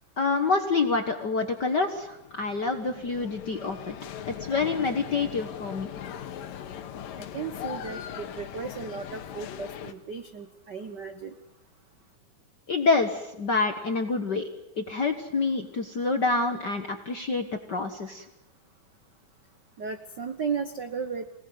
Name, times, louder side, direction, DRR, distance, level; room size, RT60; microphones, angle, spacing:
voice 1, 0.2-4.0 4.3-5.9 12.7-14.5 14.8-18.3, left 4 dB, 55° left, 6 dB, 1.2 m, -27 dB
sound 1, 1.7-9.9, left 9 dB, 80° left, 3.0 m, -40 dB
voice 2, 7.2-11.3 19.8-21.3, right 5 dB, 85° right, 8 dB, 0.9 m, -35 dB
26.5 x 19.0 x 9.5 m, 0.91 s
omnidirectional pair, 3.9 m